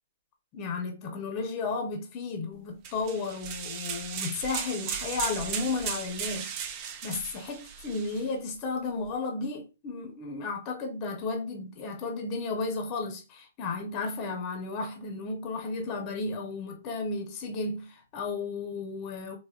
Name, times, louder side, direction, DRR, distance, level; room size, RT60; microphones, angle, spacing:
voice 1, 0.5-19.4, left 4 dB, 30° left, 0.7 m, -33 dB
sound 1, 2.8-8.2, right 8 dB, 35° right, 0.5 m, -36 dB
3.5 x 2.1 x 2.3 m
hypercardioid pair, 140°, 0 cm